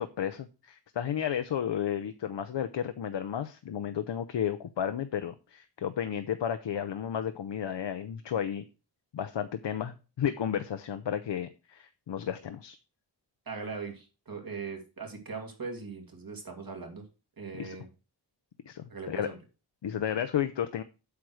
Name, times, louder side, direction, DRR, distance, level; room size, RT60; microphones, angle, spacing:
voice 1, 0.0-8.6 9.1-12.8 17.5-17.8 18.7-19.3 19.8-20.8, left 9 dB, 75° left, 10 dB, 0.7 m, -33 dB
voice 2, 13.5-17.0 17.4-17.9 18.9-19.4, right 5 dB, 50° right, 2 dB, 2.6 m, -40 dB
8.4 x 4.6 x 6.4 m, 0.32 s
wide cardioid pair, 125°, 43 cm